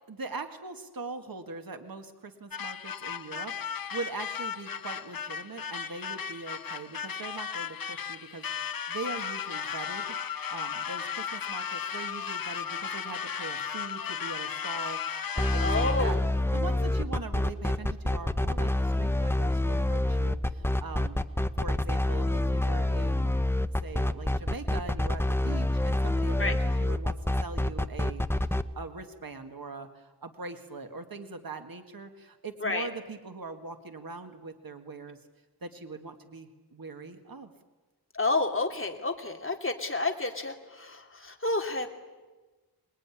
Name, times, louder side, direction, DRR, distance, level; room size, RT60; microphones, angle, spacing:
voice 1, 0.1-10.2 10.5-16.2 16.5-21.2 21.6-23.4 23.8-28.5 28.8-35.2 35.6-37.5, right 3 dB, 60° right, 6 dB, 1.9 m, -41 dB
sound 1, 2.5-16.2, left 7 dB, 60° left, 0.8 m, -35 dB
sound 2, 15.4-28.6, left 1 dB, 5° left, 0.8 m, -27 dB
voice 2, 15.6-16.2 26.4-26.5 32.6-32.9 38.1-41.9, left 2 dB, 30° left, 4 dB, 2.8 m, -30 dB
26.0 x 20.5 x 9.9 m, 1.2 s
wide cardioid pair, 85°, 40 cm